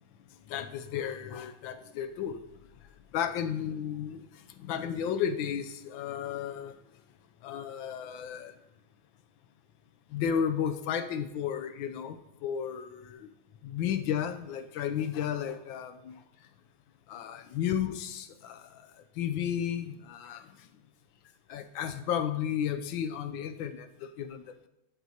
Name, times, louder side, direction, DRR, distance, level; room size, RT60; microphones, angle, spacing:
voice 1, 0.5-2.4 3.1-4.2 4.6-6.7 7.4-8.5 10.1-13.3 13.6-16.2 17.1-18.9 19.2-20.4 21.5-24.7, left 8 dB, 85° left, 9 dB, 1.4 m, -33 dB
14.5 x 8.0 x 2.8 m, 0.89 s
omnidirectional pair, 2.1 m